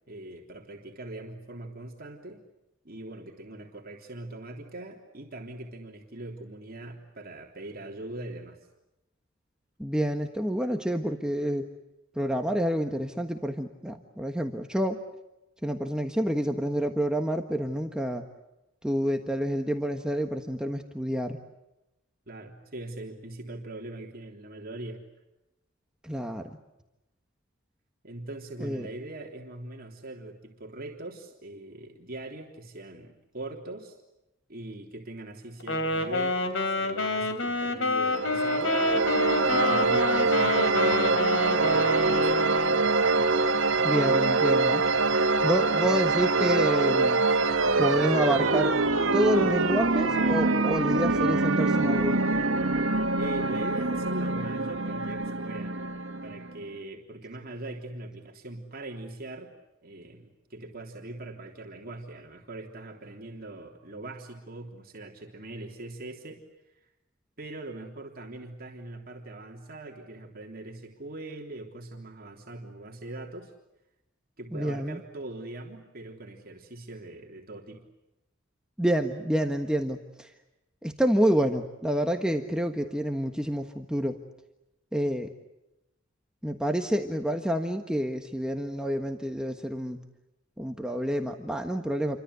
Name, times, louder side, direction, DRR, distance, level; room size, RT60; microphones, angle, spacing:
voice 1, 0.1-2.4 2.8-8.6 22.3-25.0 28.0-34.0 34.5-38.8 39.4-42.4 53.1-55.8 56.2-59.5 59.8-66.4 67.4-73.5 74.4-77.8, right 2 dB, 50° right, 1 dB, 3.4 m, -41 dB
voice 2, 9.8-11.7 12.1-15.0 15.6-18.2 18.8-21.4 26.0-26.5 28.6-28.9 43.8-44.8 45.4-47.2 47.8-48.8 49.1-52.3 74.5-75.0 78.8-80.3 80.8-84.2 84.9-85.3 86.4-90.0 90.6-92.2, equal, 5° right, 4 dB, 1.4 m, -28 dB
Wind instrument woodwind instrument, 35.6-42.9, left 2 dB, 80° left, 3.4 m, -28 dB
sound 1, 38.0-56.6, right 3 dB, 85° right, 1.8 m, -24 dB
29.0 x 24.5 x 8.2 m, 0.95 s
head